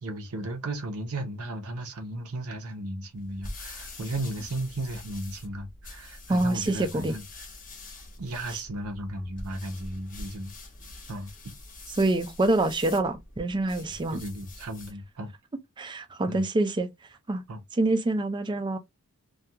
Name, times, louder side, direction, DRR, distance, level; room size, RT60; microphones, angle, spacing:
voice 1, 0.0-7.2 8.2-10.5 11.1-11.5 14.1-15.3 16.3-16.4 17.5-17.6, right 1 dB, 75° right, 0.7 m, -35 dB
sound 1, 3.1-15.0, left 2 dB, 40° left, 0.8 m, -45 dB
voice 2, 6.3-7.1 8.5-8.6 12.0-14.2 15.8-16.9 17.3-17.4 17.7-18.8, right 2 dB, 20° right, 0.3 m, -26 dB
2.3 x 2.3 x 2.7 m
head